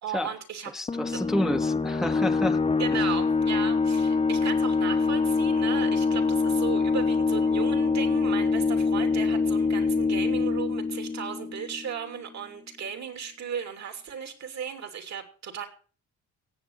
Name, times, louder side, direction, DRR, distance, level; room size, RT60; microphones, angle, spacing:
voice 1, 0.0-0.7 1.1-1.2 2.8-15.7, right 7 dB, 65° right, 3.0 m, -35 dB
voice 2, 0.7-2.6 2.9-3.1, left 1 dB, ahead, 0.6 m, -29 dB
sound 1, 0.9-12.2, left 4 dB, 20° left, 0.9 m, -25 dB
17.0 x 7.6 x 5.7 m
cardioid pair, 90°, 30 cm